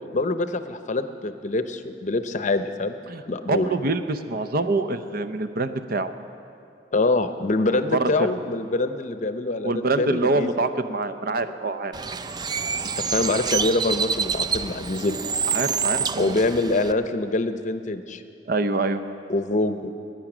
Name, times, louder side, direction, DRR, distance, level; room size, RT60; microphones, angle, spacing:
voice 1, 0.1-3.0 3.2-3.7 6.9-10.5 13.0-15.2 16.2-18.2 19.3-19.9, left 2 dB, 45° left, 10 dB, 0.7 m, -25 dB
voice 2, 3.5-6.1 7.7-8.3 9.6-12.0 15.5-16.4 18.5-19.0, right 3 dB, 55° right, 10 dB, 0.7 m, -25 dB
Bird, 11.9-16.9, right 6 dB, 25° right, 0.4 m, -27 dB
20.5 x 9.2 x 6.1 m, 2.6 s
head